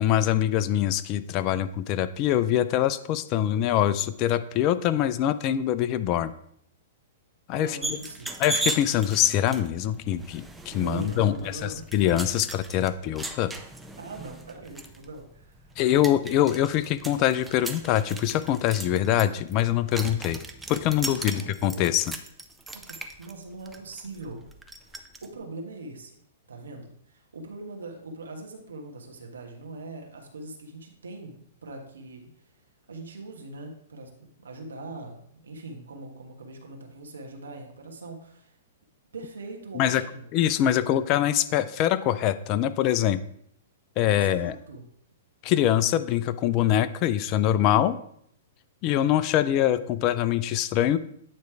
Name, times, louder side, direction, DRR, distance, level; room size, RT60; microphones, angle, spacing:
voice 1, 0.0-6.3 7.5-7.8 8.4-13.5 15.8-20.4 20.7-22.1 39.7-40.0 40.3-43.2 44.0-44.5 45.4-48.0 48.8-51.0, left 11 dB, 40° left, 13 dB, 0.4 m, -24 dB
voice 2, 7.5-8.3 8.9-9.0 10.6-11.9 14.0-15.7 21.1-21.8 22.7-24.4 24.8-26.2 26.5-32.3 32.9-38.6 39.1-40.3 44.1-44.8, right 2 dB, 80° right, 2 dB, 1.4 m, -41 dB
sound 1, 7.8-25.3, right 2 dB, 5° right, 0.6 m, -38 dB
9.2 x 3.2 x 4.6 m, 0.68 s
hypercardioid pair, 115°, 0 cm